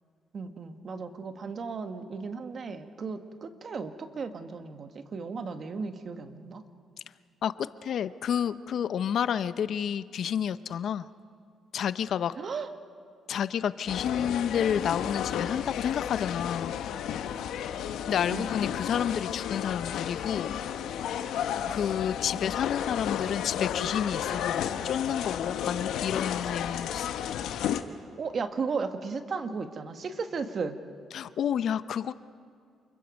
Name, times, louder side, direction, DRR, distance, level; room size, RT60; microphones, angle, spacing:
voice 1, 0.3-6.6 12.4-12.7 18.3-18.5 28.2-30.8, right 5 dB, 50° right, 8 dB, 1.5 m, -35 dB
voice 2, 7.4-11.1 11.7-12.4 13.3-16.7 18.1-20.6 21.7-27.1 31.1-32.1, left 8 dB, 65° left, 14 dB, 0.6 m, -30 dB
sound 1, 13.9-27.8, left 9 dB, 80° left, 1.0 m, -32 dB
28.5 x 22.0 x 5.3 m, 2.3 s
cardioid pair, 90°, 0 cm